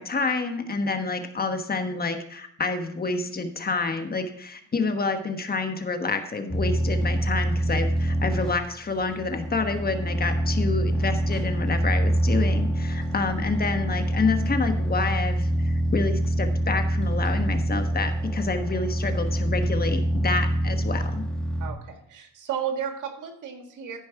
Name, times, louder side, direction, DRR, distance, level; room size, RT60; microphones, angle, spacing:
voice 1, 0.0-21.2, left 4 dB, 30° left, 6 dB, 1.3 m, -28 dB
sound 1, 6.5-21.7, right 1 dB, ahead, 2.1 m, -25 dB
voice 2, 21.6-24.0, right 8 dB, 80° right, 4 dB, 1.8 m, -33 dB
14.0 x 5.2 x 4.6 m, 0.67 s
cardioid pair, 90°, 30 cm